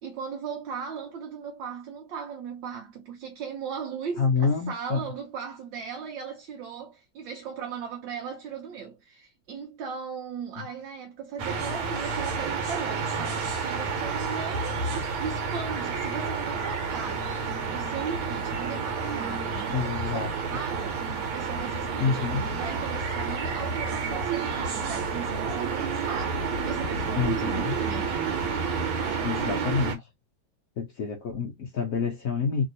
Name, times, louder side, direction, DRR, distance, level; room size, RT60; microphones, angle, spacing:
voice 1, 0.0-14.8 15.2-17.3 17.7-20.9 21.2-28.2 29.0-29.8, right 6 dB, 70° right, 1.4 m, -38 dB
voice 2, 4.2-5.0 10.6-10.7 19.7-20.3 22.0-22.5 27.2-27.8 29.2-30.0 30.8-32.7, left 5 dB, 70° left, 0.8 m, -27 dB
sound 1, 11.4-30.0, right 5 dB, 90° right, 1.8 m, -30 dB
3.4 x 2.7 x 2.7 m
omnidirectional pair, 2.2 m